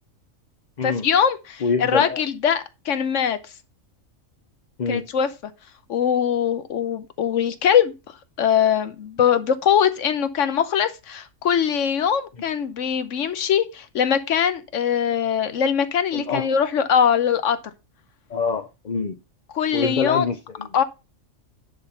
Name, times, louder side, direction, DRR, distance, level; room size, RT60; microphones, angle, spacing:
voice 1, 0.8-1.6 1.9-3.4 4.9-5.3 5.9-7.9 8.4-17.6 19.5-20.3 20.7-20.8, left 8 dB, 70° left, 1.1 m, -21 dB
voice 2, 1.6-2.2 4.8-5.1 16.1-16.5 18.3-19.2 19.7-20.7, left 5 dB, 40° left, 0.7 m, -25 dB
10.5 x 3.7 x 5.6 m
omnidirectional pair, 1.4 m